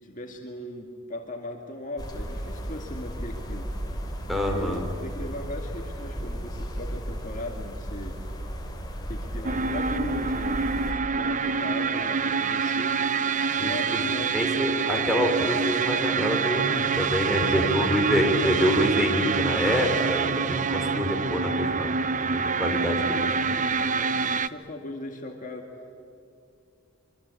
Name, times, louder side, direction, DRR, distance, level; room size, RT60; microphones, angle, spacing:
voice 1, 0.0-3.7 4.3-8.2 9.1-13.0 13.6-14.4 17.2-18.6 22.5-25.7, left 1 dB, 40° left, 2 dB, 2.2 m, -38 dB
sound 1, 2.0-10.9, equal, 20° left, 3.3 m, -35 dB
voice 2, 4.3-4.9 13.6-14.0 14.3-23.6, equal, ahead, 2 dB, 3.7 m, -26 dB
sound 2, 9.4-24.5, right 5 dB, 35° right, 0.6 m, -26 dB
26.0 x 24.0 x 8.5 m, 2.5 s
head